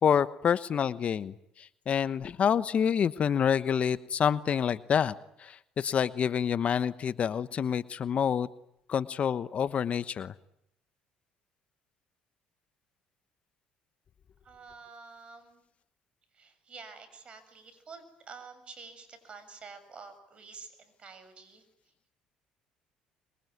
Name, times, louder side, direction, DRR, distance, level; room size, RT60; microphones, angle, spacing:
voice 1, 0.0-5.1 5.4-8.5 8.9-10.3, left 8 dB, 45° left, 14 dB, 1.1 m, -27 dB
voice 2, 14.4-15.6 16.3-21.6, right 4 dB, 40° right, 11 dB, 7.2 m, -49 dB
25.5 x 23.0 x 9.6 m, 0.77 s
supercardioid pair, 80°, 3 cm